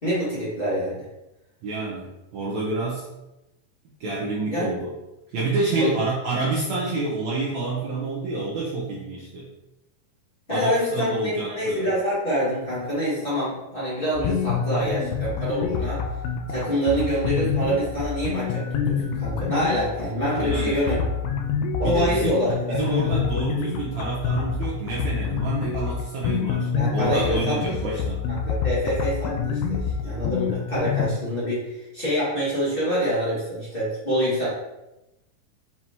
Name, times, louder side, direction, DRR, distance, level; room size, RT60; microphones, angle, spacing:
voice 1, 0.0-1.0 4.5-4.7 5.8-5.9 10.5-16.0 16.5-21.0 21.8-23.0 26.7-28.0 28.3-34.5, equal, 50° left, -9 dB, 0.6 m, -26 dB
voice 2, 1.6-3.1 4.0-4.9 5.3-9.5 10.5-11.9 20.4-20.8 21.8-22.3 22.7-28.2, right 3 dB, 75° right, -5 dB, 1.6 m, -28 dB
sound 1, 14.1-31.1, left 6 dB, 90° left, 2.6 m, -27 dB
7.3 x 4.6 x 2.9 m, 0.95 s
omnidirectional pair, 4.4 m